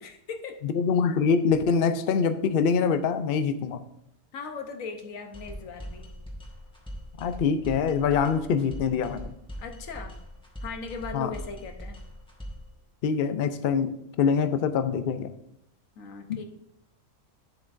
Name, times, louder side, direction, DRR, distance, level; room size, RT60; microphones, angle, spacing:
voice 1, 0.0-0.6 4.3-6.1 9.6-10.2 10.6-12.0 16.0-16.4, left 4 dB, 85° left, 5 dB, 1.3 m, -38 dB
voice 2, 0.6-3.8 7.2-9.3 11.1-11.3 13.0-15.3 16.3-16.4, left 6 dB, 60° left, 10 dB, 0.6 m, -24 dB
sound 1, 5.3-12.7, equal, 5° left, 1.3 m, -41 dB
10.0 x 7.5 x 2.5 m, 0.77 s
omnidirectional pair, 1.3 m